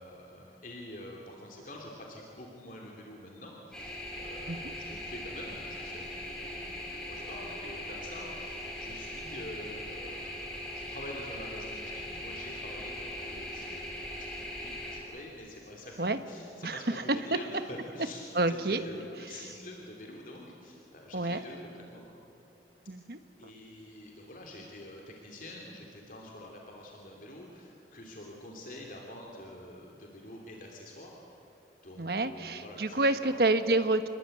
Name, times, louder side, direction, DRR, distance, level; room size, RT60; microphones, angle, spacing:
voice 1, 0.0-22.1 23.4-31.4 31.8-33.3, left 1 dB, 50° left, 0 dB, 3.1 m, -47 dB
sound 1, 3.7-15.0, left 1 dB, 5° left, 6.0 m, -40 dB
voice 2, 16.6-17.0 18.3-18.8 21.1-21.4 22.9-23.2 32.0-34.1, right 2 dB, 60° right, 10 dB, 1.3 m, -28 dB
27.5 x 22.0 x 9.2 m, 2.7 s
head